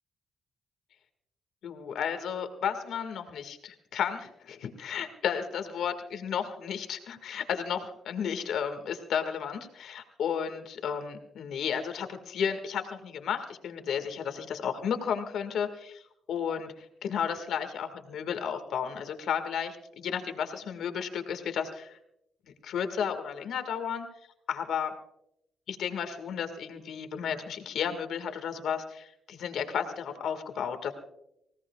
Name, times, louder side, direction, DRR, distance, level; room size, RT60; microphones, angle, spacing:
voice 1, 1.6-16.0 16.3-22.0 22.4-24.1 24.5-24.9 25.7-30.9, left 7 dB, 80° left, 8 dB, 1.8 m, -33 dB
25.5 x 17.0 x 2.3 m, 0.81 s
cardioid pair, 90°, 0 cm